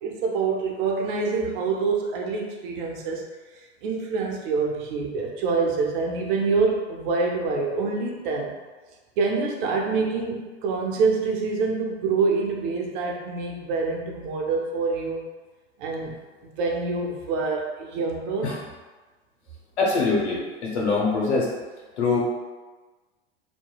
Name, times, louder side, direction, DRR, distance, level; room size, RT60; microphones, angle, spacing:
voice 1, 0.0-3.2 3.8-8.5 9.2-15.2 15.8-16.1 16.4-18.6, right 4 dB, 50° right, 0 dB, 0.5 m, -26 dB
voice 2, 19.8-21.5 22.0-22.2, left 3 dB, 80° left, -3 dB, 0.9 m, -23 dB
2.8 x 2.1 x 2.2 m, 1.3 s
hypercardioid pair, 100°, 33 cm